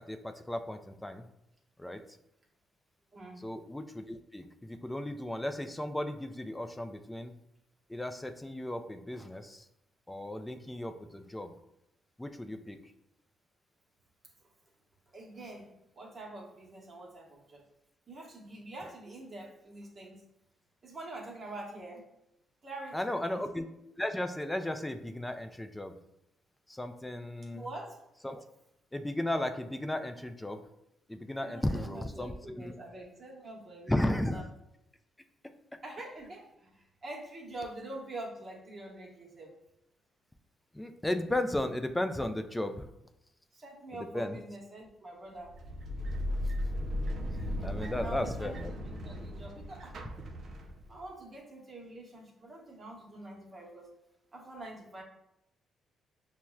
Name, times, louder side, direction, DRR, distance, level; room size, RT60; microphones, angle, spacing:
voice 1, 0.1-1.3 1.8-2.0 3.4-7.3 7.9-9.6 10.1-11.5 12.2-12.8 22.9-23.7 24.0-25.9 26.7-27.7 28.2-28.4 28.9-30.6 31.1-32.7 33.9-34.4 40.7-42.8 44.1-44.4 47.3-48.7, left 1 dB, 10° left, 7 dB, 0.3 m, -35 dB
voice 2, 3.1-3.5 15.1-17.6 18.1-20.2 20.8-22.0 22.6-23.4 27.5-28.0 31.4-34.4 35.8-39.6 43.5-45.5 47.8-49.9 50.9-53.9 54.3-55.0, right 2 dB, 40° right, -1 dB, 1.0 m, -45 dB
sound 1, 45.4-51.0, left 1 dB, 60° right, 0.4 m, -36 dB
5.9 x 2.1 x 2.3 m, 0.85 s
cardioid pair, 90°, 0 cm